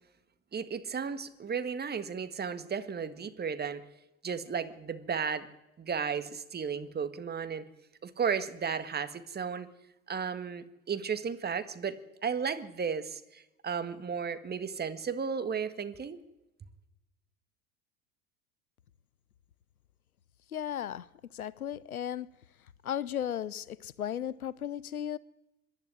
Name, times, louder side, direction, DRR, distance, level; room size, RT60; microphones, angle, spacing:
voice 1, 0.5-3.9 4.2-5.5 5.8-7.7 8.0-9.7 10.1-16.2, right 6 dB, 25° right, 1.8 m, -34 dB
voice 2, 20.5-21.1 21.3-22.3 22.8-25.2, left 10 dB, 85° left, 0.8 m, -35 dB
25.5 x 11.5 x 9.7 m
figure-of-eight pair, 75°, 42 cm